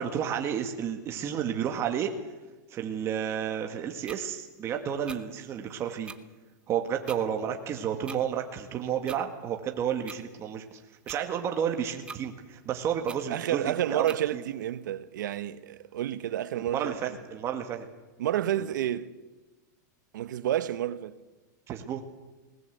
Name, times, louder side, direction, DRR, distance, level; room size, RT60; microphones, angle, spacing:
voice 1, 0.0-2.1 2.7-6.1 6.7-14.1 14.3-14.4 16.5-17.9 21.7-22.0, right 8 dB, 25° right, 1.8 m, -31 dB
sound 1, 4.1-4.2 5.1-5.2 6.1-6.2 7.1-7.2 8.1-8.2 9.1-9.2 10.1-10.2 11.1-11.2 12.1-12.2 13.1-13.2 14.1-14.2, right 4 dB, 10° right, 0.8 m, -42 dB
voice 2, 13.3-17.0 18.2-19.1 20.1-21.2, right 12 dB, 80° right, 1.2 m, -30 dB
20.5 x 19.0 x 8.1 m
supercardioid pair, 150°, 10 cm